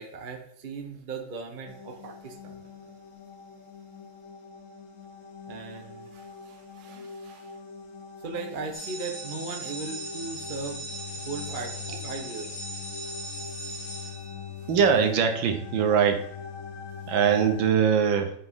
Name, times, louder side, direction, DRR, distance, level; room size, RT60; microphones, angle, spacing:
voice 1, 0.0-2.6 5.5-7.6 8.2-10.8 11.2-12.6 14.6-14.7, right 4 dB, 35° right, 3 dB, 0.9 m, -38 dB
sound 1, 1.7-17.7, left 6 dB, 50° left, 1.2 m, -42 dB
sound 2, 8.7-14.9, right 1 dB, 15° left, 2.7 m, -39 dB
voice 2, 14.7-16.2 17.1-18.3, right 7 dB, 80° right, 6 dB, 1.7 m, -22 dB
8.4 x 6.2 x 3.7 m, 0.68 s
omnidirectional pair, 2.1 m